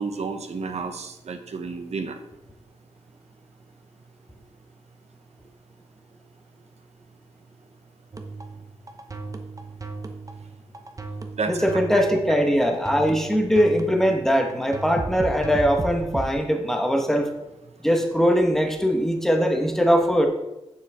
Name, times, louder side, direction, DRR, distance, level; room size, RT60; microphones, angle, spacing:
voice 1, 0.0-2.2 11.4-11.7, right 4 dB, 75° right, 7 dB, 1.0 m, -31 dB
sound 1, 8.1-16.3, right 3 dB, 30° right, 0.9 m, -35 dB
voice 2, 11.5-17.3 17.8-20.3, equal, 5° left, 3 dB, 1.2 m, -21 dB
8.9 x 7.3 x 3.6 m, 0.93 s
wide cardioid pair, 115°, 11 cm